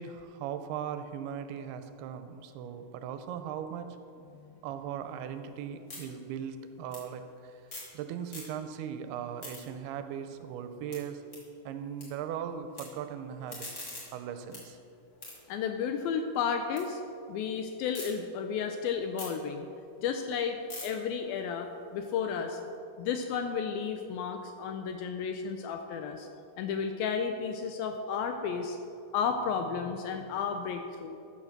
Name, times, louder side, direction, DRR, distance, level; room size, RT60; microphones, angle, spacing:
voice 1, 0.0-3.9 4.6-7.6 7.9-11.2 11.7-14.8, right 8 dB, 85° right, 9 dB, 2.5 m, -39 dB
sound 1, 5.0-8.0 8.2-8.9 9.2-12.1 12.3-12.8 13.2-16.8 17.2-18.1 18.5-22.7, left 2 dB, 25° left, 2.8 m, -48 dB
voice 2, 15.5-17.0 17.3-19.7 20.0-22.6 23.0-26.3 26.6-28.8 29.1-31.2, left 6 dB, 85° left, 6 dB, 2.2 m, -33 dB
13.5 x 6.5 x 6.5 m, 2.6 s
omnidirectional pair, 4.7 m